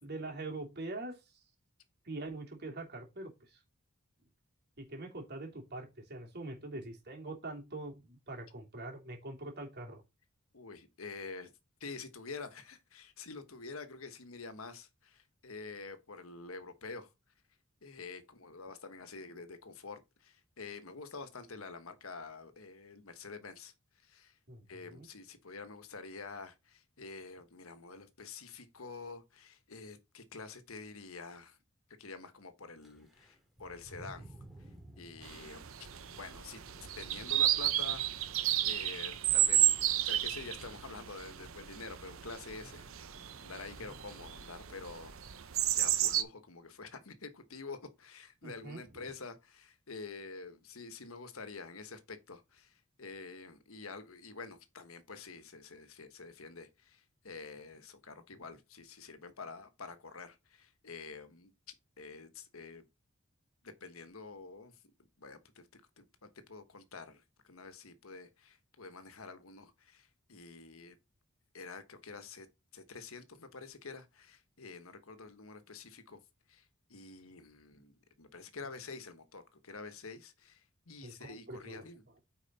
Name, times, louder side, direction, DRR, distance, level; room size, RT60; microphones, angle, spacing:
voice 1, 0.0-1.4 2.0-3.6 4.8-10.0 24.5-25.1 43.8-43.9 48.4-48.8 81.0-81.8, right 2 dB, 50° right, 2.9 m, -44 dB
voice 2, 10.5-11.5 11.8-17.1 17.8-24.4 24.7-31.6 32.0-34.3 35.0-35.6 36.0-36.6 37.0-38.4 38.6-45.5 45.7-62.8 63.6-64.8 65.2-71.0 71.5-72.5 72.7-76.2 76.5-82.2, left 4 dB, 75° left, 1.3 m, -48 dB
sound 1, 32.8-43.9, right 1 dB, ahead, 2.6 m, -57 dB
sound 2, 35.2-46.2, right 12 dB, 70° right, 0.8 m, -32 dB
9.1 x 4.8 x 4.2 m
head